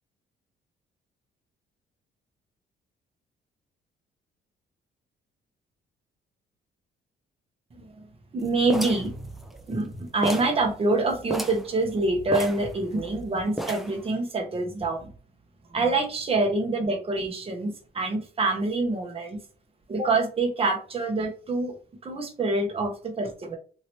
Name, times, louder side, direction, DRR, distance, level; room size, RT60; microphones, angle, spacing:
voice 1, 8.3-15.1 15.7-19.4 19.9-21.7 22.0-23.6, right 2 dB, 30° right, 3 dB, 0.9 m, -26 dB
sound 1, 8.7-9.9 10.2-10.6 10.9-11.0 11.3-11.7 12.3-13.2 13.6-14.0, right 1 dB, ahead, 0.5 m, -32 dB
2.9 x 2.9 x 3.0 m, 0.40 s
cardioid pair, 100°, 19 cm